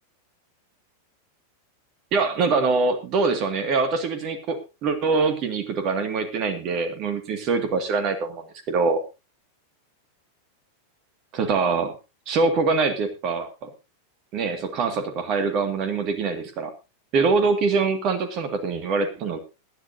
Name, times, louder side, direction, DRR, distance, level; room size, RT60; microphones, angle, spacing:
voice 1, 2.1-9.0 11.3-12.0 12.3-13.7 14.3-16.7 17.1-19.4, right 4 dB, 40° right, 9 dB, 2.2 m, -24 dB
21.0 x 10.5 x 2.8 m, 0.27 s
figure-of-eight pair, 90°, 0 cm